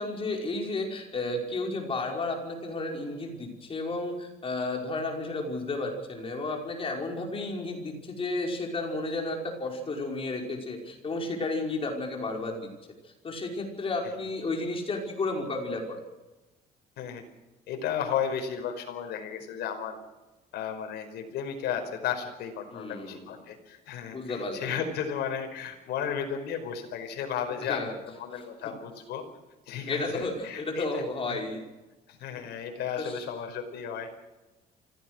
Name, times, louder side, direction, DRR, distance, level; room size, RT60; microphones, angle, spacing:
voice 1, 0.0-12.7 13.0-16.0 22.7-23.3 24.1-24.7 27.6-27.9 28.3-28.7 29.9-31.6 33.0-33.2, left 2 dB, 35° left, 1 dB, 5.4 m, -32 dB
voice 2, 17.7-20.0 20.5-29.2 29.7-31.0 31.3-31.4 32.1-34.1, left 8 dB, 75° left, 5 dB, 5.1 m, -34 dB
25.5 x 17.0 x 6.3 m, 1.1 s
cardioid pair, 110°, 17 cm